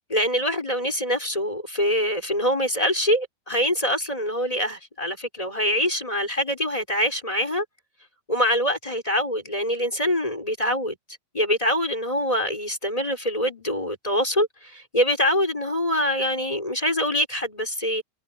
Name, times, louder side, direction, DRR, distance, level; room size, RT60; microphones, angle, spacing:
voice 1, 0.1-7.6 8.3-11.0 11.3-18.0, equal, 10° left, 4.4 m, -24 dB
omnidirectional pair, 5.1 m